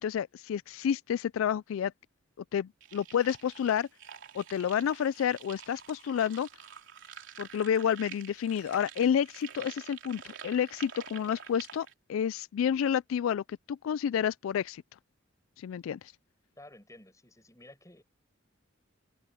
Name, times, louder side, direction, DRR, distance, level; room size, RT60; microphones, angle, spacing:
voice 1, 0.0-1.9 2.5-3.9 4.3-6.5 7.4-14.8 15.6-16.1, left 8 dB, 75° left, 0.3 m, -30 dB
sound 1, 2.8-11.9, right 8 dB, 65° right, 3.6 m, -48 dB
voice 2, 16.6-18.0, left 1 dB, 15° left, 5.8 m, -53 dB
open air
head